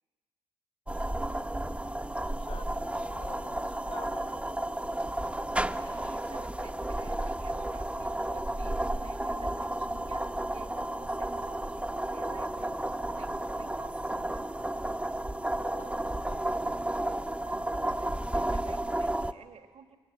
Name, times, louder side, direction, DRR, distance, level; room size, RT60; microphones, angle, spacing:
sound 1, 0.9-19.3, right 1 dB, 10° right, 1.0 m, -32 dB
voice 1, 2.3-5.2 15.4-15.9 16.3-16.5, left 5 dB, 50° left, 6 dB, 2.1 m, -49 dB
voice 2, 5.8-11.8 12.1-14.4 17.4-20.0, right 6 dB, 60° right, 8 dB, 1.6 m, -51 dB
21.5 x 19.5 x 8.7 m, 1.5 s
hypercardioid pair, 50°, 12 cm